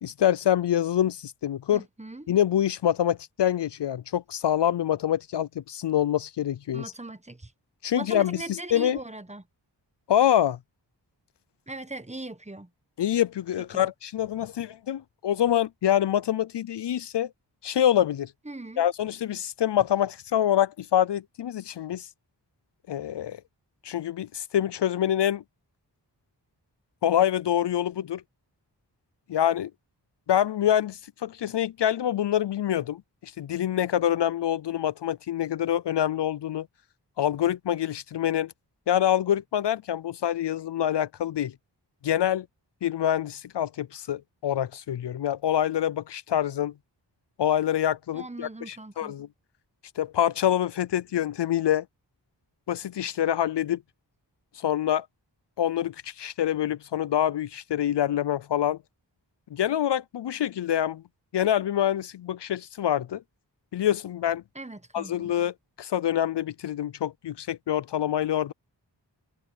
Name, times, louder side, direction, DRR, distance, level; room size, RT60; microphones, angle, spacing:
voice 1, 0.0-1.8 2.3-6.8 7.8-9.0 10.1-10.6 13.0-17.3 17.6-18.3 18.8-22.1 22.9-23.4 23.8-25.4 27.0-28.2 29.3-29.7 30.3-36.7 37.2-38.5 38.9-41.5 42.0-42.5 42.8-46.7 47.4-49.3 50.0-51.8 52.7-53.8 54.6-55.1 55.6-58.8 59.5-61.0 61.3-63.2 63.7-64.4 64.9-68.5, left 11 dB, 70° left, 0.5 m, -26 dB
voice 2, 1.7-2.3 6.7-7.5 7.9-9.4 11.7-12.7 13.7-13.9 18.4-18.9 48.1-49.1 64.5-65.3, right 2 dB, 15° right, 1.2 m, -40 dB
cardioid pair, 45°, 44 cm